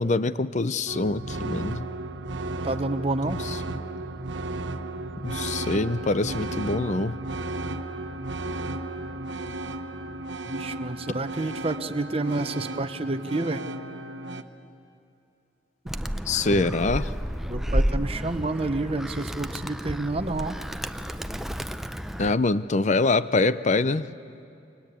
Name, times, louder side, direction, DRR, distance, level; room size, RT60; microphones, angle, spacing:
voice 1, 0.0-1.9 3.4-3.6 5.2-7.2 16.3-17.1 22.2-24.1, left 3 dB, 40° left, 15 dB, 0.6 m, -24 dB
sound 1, 0.9-14.4, right 2 dB, 75° right, 1.2 m, -34 dB
voice 2, 2.6-3.4 10.5-13.7 16.5-16.6 17.5-20.6, right 2 dB, 30° right, 9 dB, 1.0 m, -29 dB
Animal, 15.9-22.3, equal, ahead, 0.5 m, -31 dB
29.5 x 24.0 x 8.3 m, 2.6 s
head